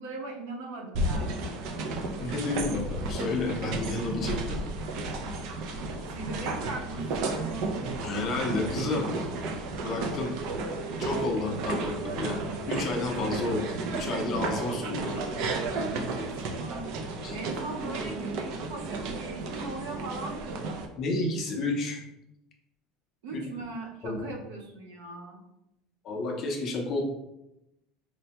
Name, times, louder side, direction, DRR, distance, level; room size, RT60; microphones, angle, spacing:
voice 1, 0.0-1.6 6.1-7.4 15.8-16.9 17.3-20.8 23.2-25.4, right 3 dB, 85° right, 0 dB, 0.8 m, -39 dB
sound 1, 0.9-20.9, right 2 dB, 50° right, 0.4 m, -33 dB
voice 2, 2.2-4.6 8.0-9.1 9.8-10.4 11.0-15.3 17.2-17.4 21.0-22.0 23.3-23.4 24.0-24.2 26.0-27.0, left 2 dB, 30° left, 1 dB, 0.5 m, -31 dB
4.3 x 2.1 x 2.8 m, 0.87 s
cardioid pair, 175°, 0 cm